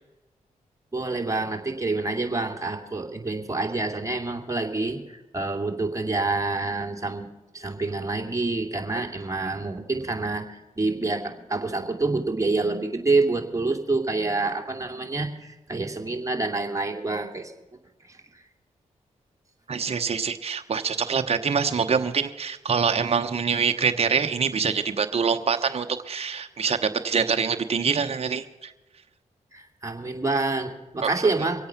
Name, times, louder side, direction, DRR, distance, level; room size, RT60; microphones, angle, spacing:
voice 1, 0.9-7.3 7.5-17.5 18.1-18.2 29.5-31.7, right 3 dB, 25° right, 2 dB, 2.6 m, -27 dB
voice 2, 19.7-28.7 31.0-31.3, right 6 dB, 45° right, 6 dB, 1.0 m, -25 dB
23.5 x 8.5 x 5.9 m, 1.0 s
supercardioid pair, 50°, 14 cm